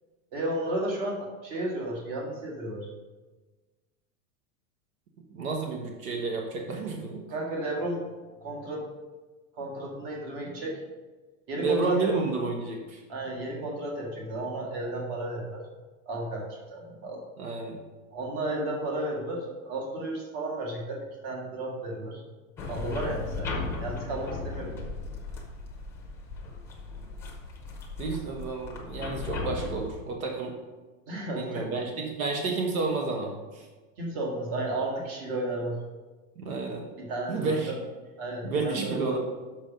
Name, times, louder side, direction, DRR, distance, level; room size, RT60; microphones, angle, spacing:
voice 1, 0.3-2.9 7.3-8.0 8.4-8.8 9.6-10.8 11.5-12.1 13.1-15.6 16.1-17.2 18.1-22.2 22.7-23.5 23.8-24.7 31.1-31.8 34.0-35.8 37.0-37.8 38.2-39.2, right 1 dB, 40° right, -1 dB, 1.9 m, -33 dB
voice 2, 5.3-7.2 11.6-13.0 17.4-17.8 28.0-30.5 31.3-33.7 36.4-36.9 37.3-37.7 38.4-39.2, right 4 dB, 75° right, 1 dB, 1.4 m, -31 dB
sound 1, 22.6-29.9, left 3 dB, 5° left, 0.7 m, -36 dB
6.3 x 6.0 x 5.2 m, 1.2 s
supercardioid pair, 165°, 42 cm